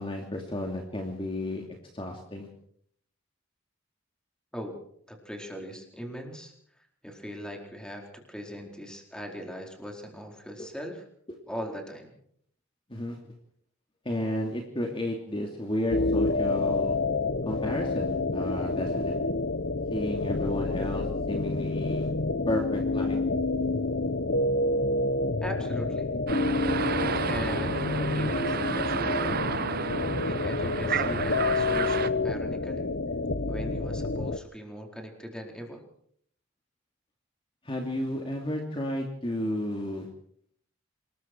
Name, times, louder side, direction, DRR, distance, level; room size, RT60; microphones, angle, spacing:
voice 1, 0.0-1.6 1.9-2.5 12.9-13.2 14.0-17.0 17.5-19.2 19.9-22.1 22.5-23.2 37.6-40.1, left 1 dB, 25° left, 1 dB, 2.7 m, -32 dB
voice 2, 5.1-11.0 11.5-12.2 25.4-26.1 27.0-29.4 30.2-32.9 33.5-35.8, equal, 5° left, 2 dB, 4.3 m, -40 dB
sound 1, 15.9-34.4, left 2 dB, 55° left, 1.0 m, -28 dB
sound 2, 26.3-32.1, right 5 dB, 50° right, 1.0 m, -31 dB
27.0 x 21.0 x 4.6 m, 0.64 s
head